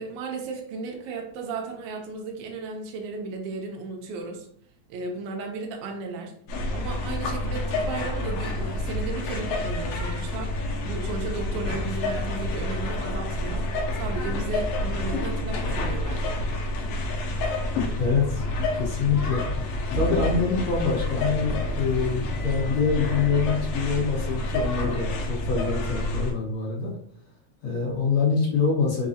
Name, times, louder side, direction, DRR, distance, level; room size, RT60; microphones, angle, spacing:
voice 1, 0.0-4.5 4.9-6.3 6.7-10.5 10.8-13.7 13.9-16.4, right 4 dB, 85° right, 3 dB, 1.3 m, -35 dB
sound 1, 6.5-26.3, left 1 dB, 75° left, 1.5 m, -28 dB
voice 2, 18.0-19.4 19.9-26.9 27.6-29.1, left 5 dB, 60° left, -5 dB, 2.0 m, -25 dB
4.7 x 2.3 x 2.6 m, 0.62 s
omnidirectional pair, 3.3 m